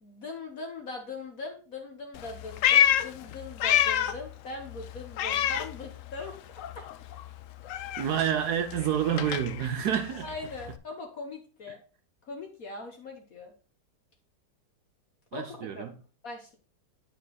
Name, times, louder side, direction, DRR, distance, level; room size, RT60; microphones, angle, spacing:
voice 1, 0.0-6.4 10.2-11.8 12.2-13.5 15.3-15.9 16.2-16.6, left 3 dB, 55° left, 1.4 m, -40 dB
Meow, 2.1-4.3 4.6-6.3 6.6-10.8, left 11 dB, 90° left, 0.6 m, -28 dB
voice 2, 8.0-10.3 15.3-16.0, right 9 dB, 70° right, 1.1 m, -28 dB
9.6 x 4.7 x 3.9 m
omnidirectional pair, 2.0 m